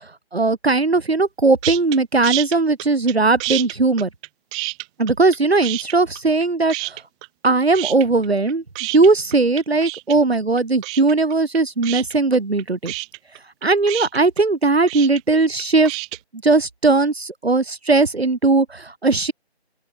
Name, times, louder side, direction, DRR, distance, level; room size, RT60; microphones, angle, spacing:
voice 1, 0.3-4.1 5.0-7.0 7.4-8.6 8.9-12.9 13.6-15.9 16.4-19.3, right 3 dB, 70° right, 1.4 m, -18 dB
sound 1, 1.6-2.0 2.2-3.1 3.4-5.4 5.6-6.4 6.7-7.5 7.7-16.2, right 27 dB, 5° right, 2.2 m, -29 dB
open air
figure-of-eight pair, 165°, 33 cm